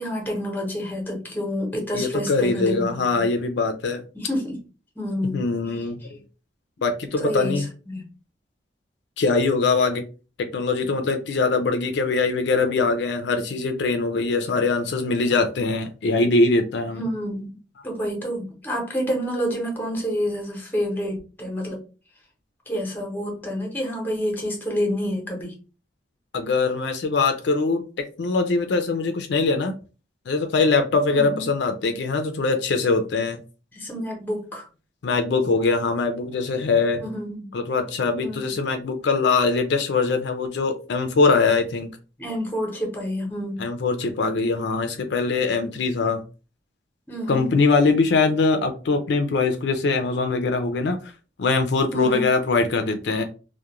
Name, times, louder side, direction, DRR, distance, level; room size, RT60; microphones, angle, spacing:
voice 1, 0.0-3.3 4.1-4.6 5.0-5.9 7.2-8.0 16.9-17.6 17.8-21.8 22.7-25.5 31.1-31.5 33.7-34.7 37.0-37.5 38.2-38.5 42.2-43.7 45.3-45.8 47.1-47.5 51.9-52.3, equal, 10° left, 0 dB, 0.8 m, -28 dB
voice 2, 1.9-4.0 5.3-6.0 6.8-7.6 9.2-10.0 10.4-17.0 26.3-27.8 28.2-29.7 30.3-33.4 35.0-37.0 37.5-41.9 43.6-46.2 47.3-51.1 51.4-53.2, left 3 dB, 70° left, 6 dB, 0.4 m, -22 dB
2.3 x 2.1 x 2.9 m, 0.34 s
head